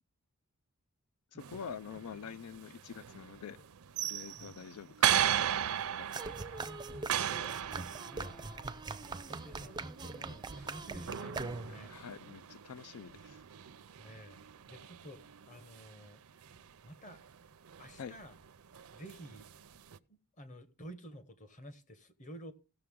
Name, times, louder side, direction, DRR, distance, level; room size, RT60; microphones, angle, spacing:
voice 1, 1.3-3.7 4.0-5.2 5.9-6.5 11.6-13.4 18.0-18.1, left 7 dB, 85° left, 0.4 m, -46 dB
sound 1, 1.4-20.0, right 10 dB, 75° right, 0.5 m, -38 dB
sound 2, 6.1-11.9, right 3 dB, 20° right, 0.5 m, -42 dB
voice 2, 6.3-7.5 8.0-8.7 9.2-11.9 14.0-15.2 15.5-16.2 16.8-17.2 17.8-18.3 18.9-19.5 20.1-22.5, equal, 35° left, 1.1 m, -51 dB
17.0 x 6.7 x 3.6 m
head